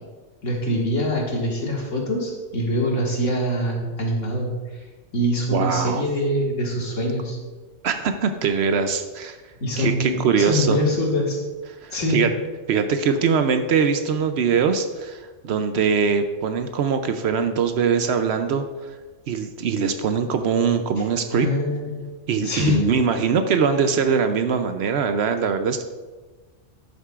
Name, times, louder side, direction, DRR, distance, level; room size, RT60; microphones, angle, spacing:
voice 1, 0.4-4.8 5.1-7.4 9.6-11.4 11.9-12.2 21.3-21.9 22.4-22.8, left 1 dB, 80° left, -2 dB, 2.1 m, -24 dB
voice 2, 5.5-6.0 7.8-9.4 9.8-10.8 11.8-12.3 12.7-19.0 19.3-21.5 22.3-25.8, right 6 dB, 65° right, 8 dB, 0.8 m, -22 dB
12.5 x 6.6 x 2.4 m, 1.3 s
omnidirectional pair, 1.3 m